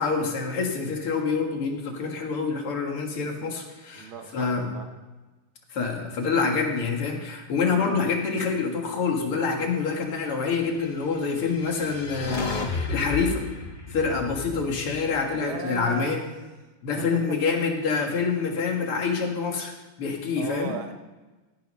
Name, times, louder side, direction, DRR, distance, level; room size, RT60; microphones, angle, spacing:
voice 1, 0.0-4.7 5.7-13.4 13.9-16.2 16.8-19.7 20.0-20.7, left 5 dB, 85° left, 2 dB, 2.7 m, -26 dB
voice 2, 3.9-4.9 15.3-16.3 17.0-17.6 18.1-18.3 20.4-20.9, right 6 dB, 70° right, 6 dB, 1.8 m, -36 dB
sound 1, 11.2-15.6, left 4 dB, 45° left, 0.6 m, -33 dB
16.5 x 6.6 x 5.5 m, 1.2 s
omnidirectional pair, 2.4 m